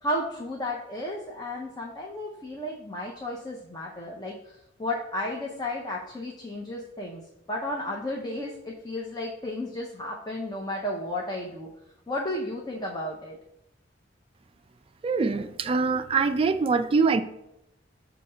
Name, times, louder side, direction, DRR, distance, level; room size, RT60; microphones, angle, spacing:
voice 1, 0.0-11.7 12.1-13.4, left 1 dB, 20° left, -2 dB, 0.6 m, -33 dB
voice 2, 15.0-17.2, right 4 dB, 30° right, 9 dB, 0.3 m, -24 dB
6.6 x 2.8 x 5.5 m, 0.84 s
head